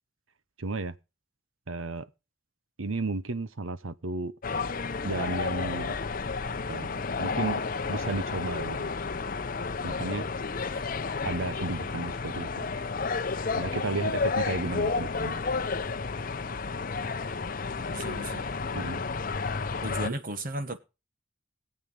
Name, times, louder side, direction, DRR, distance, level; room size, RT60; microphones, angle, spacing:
voice 1, 0.6-1.0 1.7-2.1 2.8-4.3 5.0-6.0 6.7-6.9 7.2-7.6 7.9-9.0 9.8-10.3 11.2-12.7 13.5-15.4 18.7-19.0, right 3 dB, 85° right, 1.0 m, -33 dB
sound 1, 4.4-20.1, left 4 dB, 45° left, 0.7 m, -31 dB
voice 2, 17.9-18.4 19.8-20.8, right 2 dB, 45° right, 1.3 m, -35 dB
19.0 x 8.1 x 5.4 m
head